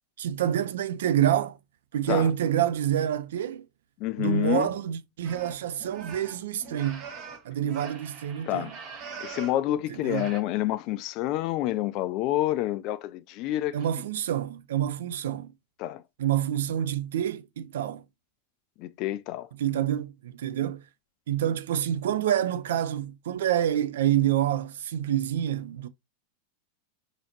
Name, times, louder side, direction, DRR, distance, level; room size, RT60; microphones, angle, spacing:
voice 1, 0.2-1.6 1.9-3.6 4.2-7.1 7.4-8.7 9.9-10.3 13.7-15.5 16.2-18.0 19.6-20.8 21.3-25.9, right 11 dB, 60° right, 0.4 m, -27 dB
voice 2, 4.0-4.7 8.5-8.7 9.2-13.8 15.8-16.0 18.8-19.5, left 14 dB, 40° left, 0.3 m, -28 dB
sound 1, 5.2-9.6 10.0-10.4, right 5 dB, 35° right, 1.3 m, -42 dB
5.5 x 2.8 x 2.9 m
figure-of-eight pair, 90°, 0 cm